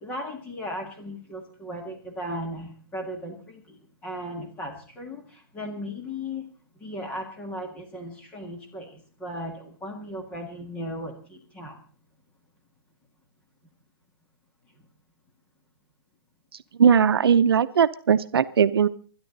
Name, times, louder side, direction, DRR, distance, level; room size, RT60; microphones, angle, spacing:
voice 1, 0.0-3.8 4.0-6.4 6.8-11.8, equal, 10° left, 3 dB, 2.0 m, -36 dB
voice 2, 16.8-18.9, right 7 dB, 80° right, 12 dB, 0.7 m, -19 dB
25.0 x 10.5 x 4.0 m, 0.42 s
hypercardioid pair, 170°, 13 cm